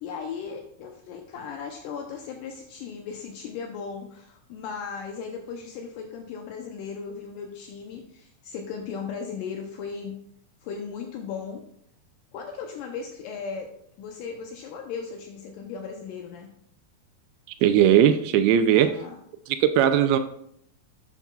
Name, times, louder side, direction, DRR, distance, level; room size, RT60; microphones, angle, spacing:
voice 1, 0.0-10.2 10.6-11.6 12.3-16.5 18.6-19.2, left 6 dB, 85° left, 2 dB, 1.9 m, -37 dB
voice 2, 17.6-18.9 19.5-20.2, right 10 dB, 80° right, 9 dB, 2.3 m, -19 dB
11.0 x 7.2 x 2.3 m, 0.70 s
omnidirectional pair, 4.6 m